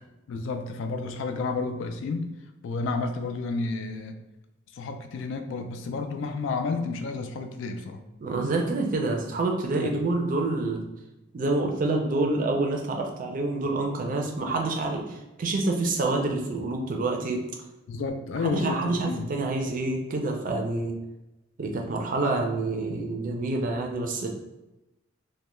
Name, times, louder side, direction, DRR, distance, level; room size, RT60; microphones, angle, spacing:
voice 1, 0.3-2.3 2.6-4.2 4.7-8.0 9.8-10.0 13.7-13.8 17.9-19.3, left 3 dB, 75° left, 7 dB, 0.3 m, -31 dB
voice 2, 8.2-10.8 11.3-17.4 18.4-20.9 21.6-24.3, right 2 dB, 45° right, 2 dB, 0.4 m, -27 dB
2.2 x 2.1 x 3.0 m, 0.99 s
head